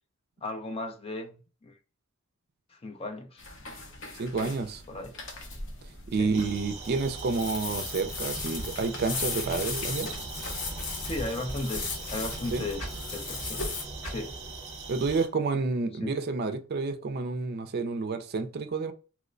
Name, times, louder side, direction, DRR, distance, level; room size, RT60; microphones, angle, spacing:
voice 1, 0.4-1.8 2.7-3.4 4.4-4.6 4.9-5.1 6.2-6.3 11.0-13.6 14.1-14.4 16.0-16.1, left 2 dB, 30° left, 0.5 m, -36 dB
sound 1, 3.4-13.8, left 4 dB, 65° left, 0.8 m, -38 dB
voice 2, 4.2-4.8 6.1-10.1 12.5-12.6 14.9-18.9, right 4 dB, 50° right, 0.4 m, -29 dB
sound 2, 6.3-15.3, right 2 dB, 35° right, 0.8 m, -40 dB
sound 3, 8.7-13.0 13.5-13.7 14.0-14.3, left 1 dB, 85° left, 1.8 m, -42 dB
3.0 x 2.1 x 3.7 m
head